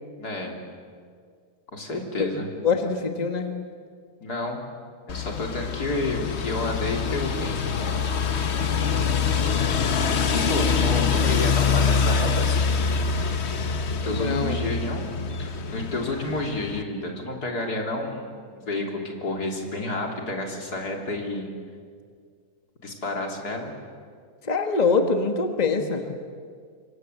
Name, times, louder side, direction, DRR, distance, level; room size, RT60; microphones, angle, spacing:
voice 1, 0.2-0.6 1.7-2.5 4.2-4.6 5.1-8.1 10.3-12.7 13.9-15.1 15.4-21.5 22.8-23.7, left 2 dB, 75° left, 1 dB, 3.8 m, -30 dB
voice 2, 2.6-3.5 9.5-9.8 10.5-10.8 14.0-14.7 24.4-26.0, left 4 dB, 25° left, 5 dB, 1.6 m, -25 dB
sound 1, 5.1-16.8, left 5 dB, 45° left, 1.3 m, -25 dB
27.0 x 24.0 x 8.0 m, 2.1 s
omnidirectional pair, 1.7 m